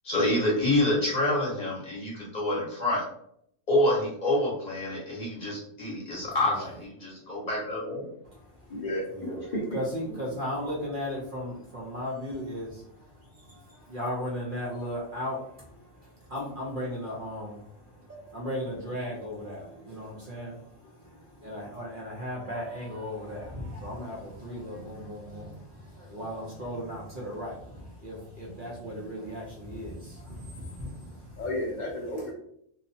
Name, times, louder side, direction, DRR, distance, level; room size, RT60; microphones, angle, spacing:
voice 1, 0.0-3.0 3.7-8.1 9.2-9.4, left 1 dB, 35° left, -5 dB, 0.9 m, -27 dB
voice 2, 6.2-6.7 8.2-8.8 9.1-9.3 9.7-31.4, equal, 50° right, -4 dB, 0.7 m, -37 dB
voice 3, 8.7-9.8 31.4-32.3, left 1 dB, 65° left, -2 dB, 0.4 m, -32 dB
2.8 x 2.0 x 2.6 m, 0.70 s
omnidirectional pair, 1.4 m